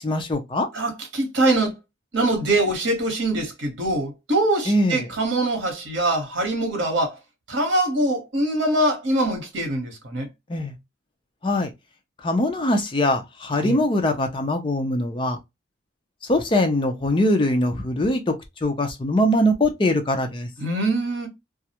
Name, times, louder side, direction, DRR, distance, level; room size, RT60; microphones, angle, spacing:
voice 1, 0.0-0.7 4.7-5.1 10.5-10.7 11.4-11.7 12.2-15.4 16.2-18.4 18.6-20.5, left 1 dB, 25° left, 0.4 m, -22 dB
voice 2, 0.7-1.7 2.1-7.2 7.5-10.3 13.6-13.8 20.6-21.3, right 1 dB, 75° right, 0.9 m, -23 dB
2.3 x 2.0 x 2.8 m
head